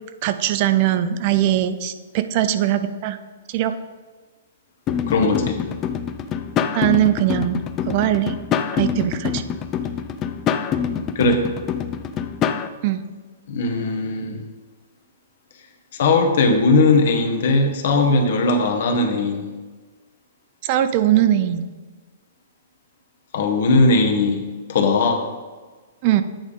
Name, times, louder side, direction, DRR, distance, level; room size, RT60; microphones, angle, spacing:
voice 1, 0.2-3.2 3.5-3.7 6.7-8.3 8.7-9.4 12.8-13.0 20.6-21.6 26.0-26.2, right 12 dB, 45° right, 10 dB, 0.4 m, -20 dB
sound 1, 4.9-12.7, left 8 dB, 30° left, 0.5 m, -25 dB
voice 2, 5.1-5.6 11.1-11.5 13.5-14.4 16.0-19.5 23.3-24.4 24.7-25.2, left 3 dB, 60° left, 4 dB, 0.9 m, -18 dB
8.8 x 3.5 x 5.2 m, 1.3 s
figure-of-eight pair, 115°, 0 cm